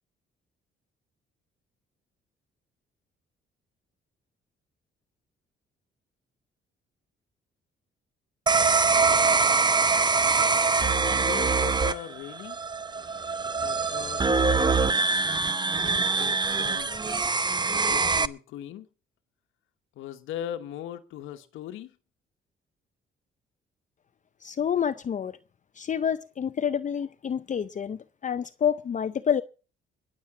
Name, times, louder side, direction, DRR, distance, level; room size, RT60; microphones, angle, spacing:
sound 1, 8.5-18.3, right 4 dB, 20° right, 0.7 m, -24 dB
voice 1, 11.2-12.6 13.6-15.0 15.8-16.9 17.7-18.9 20.0-21.9, left 11 dB, 90° left, 1.2 m, -40 dB
voice 2, 24.4-25.4 25.8-29.4, left 8 dB, 40° left, 0.6 m, -28 dB
21.0 x 7.4 x 6.0 m
cardioid pair, 90°, 20 cm